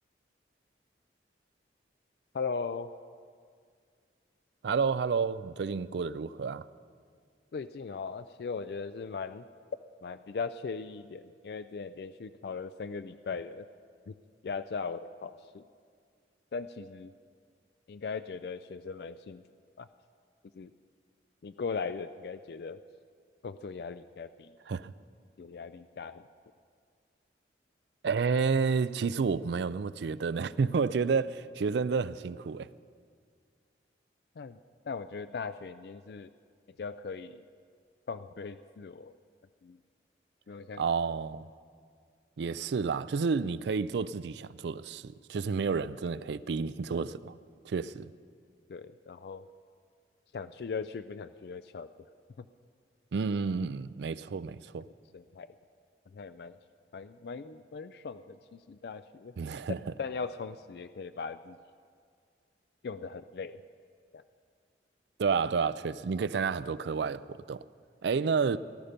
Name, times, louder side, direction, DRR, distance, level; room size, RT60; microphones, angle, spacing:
voice 1, 2.3-2.9 7.5-9.4 10.0-13.7 14.1-14.2 14.4-15.6 16.5-17.1 17.9-19.4 19.8-19.9 20.5-20.7 21.4-22.8 23.4-24.5 25.4-26.2 34.4-34.6 34.9-36.3 36.7-37.4 38.1-39.1 39.6-39.8 40.5-40.8 48.7-49.5 50.3-51.9 52.4-52.5 55.1-55.5 56.1-56.6 56.9-59.3 60.0-61.6 62.8-63.6 64.1-64.2, left 5 dB, 60° left, 0.3 m, -39 dB
voice 2, 4.6-6.7 24.7-24.9 28.0-32.7 40.8-41.4 42.4-47.3 47.6-48.1 53.1-54.9 59.4-59.8 65.2-67.6 68.0-68.6, right 5 dB, 70° right, 0.4 m, -30 dB
18.0 x 12.5 x 5.2 m
head